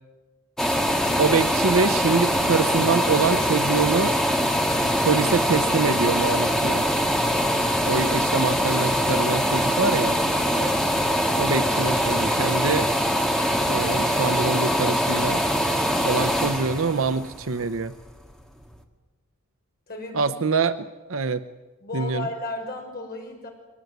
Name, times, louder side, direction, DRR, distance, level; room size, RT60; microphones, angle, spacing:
sound 1, 0.6-18.3 18.7-18.8, equal, ahead, 1.7 m, -23 dB
voice 1, 1.2-4.2 5.0-6.9 7.9-10.2 11.3-12.9 13.6-15.4 16.0-17.9 20.1-21.4 21.9-22.3, right 4 dB, 65° right, 11 dB, 0.7 m, -24 dB
voice 2, 10.4-10.8 19.9-20.3 21.8-23.5, left 2 dB, 40° left, 2 dB, 5.6 m, -34 dB
23.0 x 19.5 x 9.4 m, 1.2 s
head